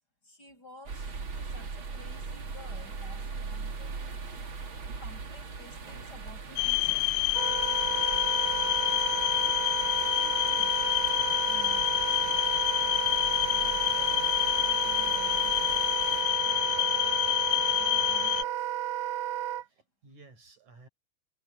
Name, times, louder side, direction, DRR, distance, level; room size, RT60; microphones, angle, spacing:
voice 1, 0.2-4.4 5.0-7.1 10.4-10.8 11.4-12.2 13.5-15.8 16.4-18.7, left 2 dB, 30° left, 8.1 m, -53 dB
sound 1, 0.9-16.2, right 4 dB, 40° right, 2.9 m, -41 dB
sound 2, 6.6-18.4, left 23 dB, 80° left, 2.4 m, -28 dB
Wind instrument woodwind instrument, 7.3-19.6, right 12 dB, 80° right, 1.5 m, -32 dB
voice 2, 19.1-20.9, right 3 dB, 60° right, 6.7 m, -57 dB
omnidirectional pair, 3.8 m